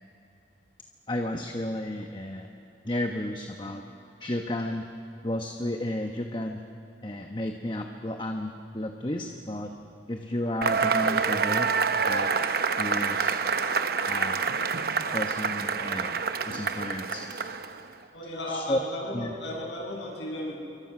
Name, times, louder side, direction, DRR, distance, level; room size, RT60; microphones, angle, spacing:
voice 1, 1.1-2.5 2.8-3.8 4.2-4.8 5.2-6.6 7.0-9.7 10.1-11.7 12.1-12.3 12.8-13.4 14.1-14.4 15.1-16.2 16.5-17.2 18.5-18.8 19.1-19.4, left 1 dB, 25° left, 4 dB, 1.1 m, -32 dB
Cheering / Applause / Crowd, 10.6-17.9, right 5 dB, 55° right, 0.9 m, -27 dB
voice 2, 18.1-20.5, left 1 dB, 75° left, -3 dB, 7.6 m, -34 dB
28.0 x 23.5 x 6.1 m, 3.0 s
head